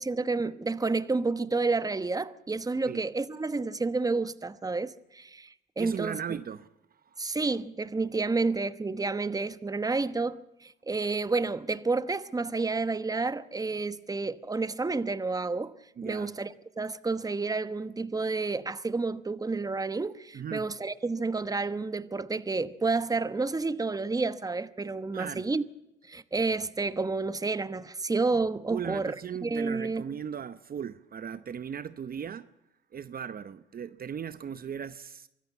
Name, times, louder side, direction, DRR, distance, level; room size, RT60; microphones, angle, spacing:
voice 1, 0.0-6.2 7.2-15.7 16.0-25.6 26.1-29.1 29.4-30.0, right 3 dB, 20° right, 1.1 m, -30 dB
voice 2, 5.8-6.7 7.1-7.3 16.0-16.3 20.3-20.7 25.1-25.5 28.7-32.5 32.9-35.3, right 8 dB, 45° right, 0.8 m, -37 dB
24.5 x 14.0 x 8.6 m
cardioid pair, 85°, 20 cm